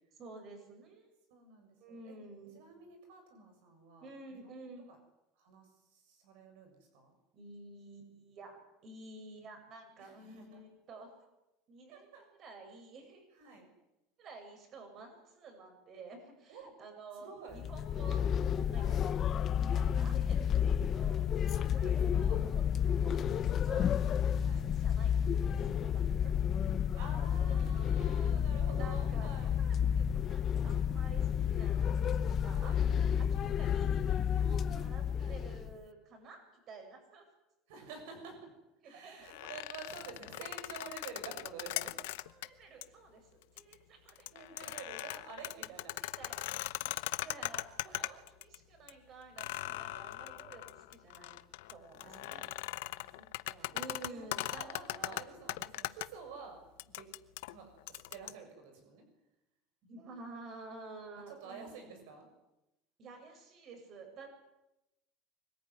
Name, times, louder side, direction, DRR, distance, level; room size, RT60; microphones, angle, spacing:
voice 1, 0.2-1.1 1.8-2.6 4.0-4.9 7.3-11.1 11.7-13.3 14.2-18.3 18.5-22.7 23.0-24.4 24.7-26.3 28.0-37.3 38.8-39.5 42.2-44.7 46.0-46.7 47.1-51.4 51.7-52.5 53.7-55.2 59.8-62.0 63.0-64.3, right 3 dB, 40° right, 4 dB, 7.9 m, -52 dB
voice 2, 1.3-2.2 2.6-4.6 4.9-5.0 5.4-7.1 10.0-10.6 10.9-11.0 11.9-12.3 13.3-13.7 16.5-16.7 17.2-17.6 18.8-19.0 19.7-19.9 21.5-22.5 22.9-23.1 24.4-24.6 26.9-29.6 32.5-33.5 35.2-35.4 37.7-38.5 38.8-41.9 44.3-46.0 47.5-47.6 47.8-48.2 49.9-50.1 52.0-53.8 54.0-56.6 56.9-57.1 57.5-59.1 61.3-62.3, right 4 dB, 85° right, 5 dB, 7.1 m, -50 dB
sound 1, 17.5-35.8, left 8 dB, 35° left, 0.9 m, -31 dB
sound 2, 39.2-42.5 42.8-42.9 43.4-43.7 44.1-48.6 48.9-49.0 49.4-56.1 56.8-58.3, left 19 dB, 85° left, 0.9 m, -40 dB
25.0 x 19.0 x 9.7 m, 0.92 s
supercardioid pair, 135°, 0 cm